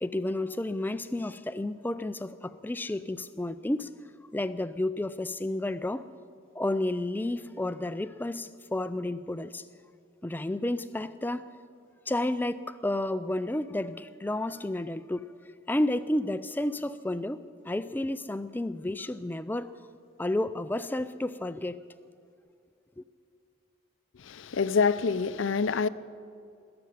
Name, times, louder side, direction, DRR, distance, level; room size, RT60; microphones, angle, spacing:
voice 1, 0.0-3.9 4.3-6.1 6.6-9.7 10.2-11.5 12.1-15.4 15.7-19.7 20.2-21.8 23.0-23.1, left 1 dB, 10° left, 0.3 m, -31 dB
voice 2, 24.1-25.9, left 5 dB, 65° left, 0.5 m, -26 dB
20.5 x 6.9 x 9.3 m
head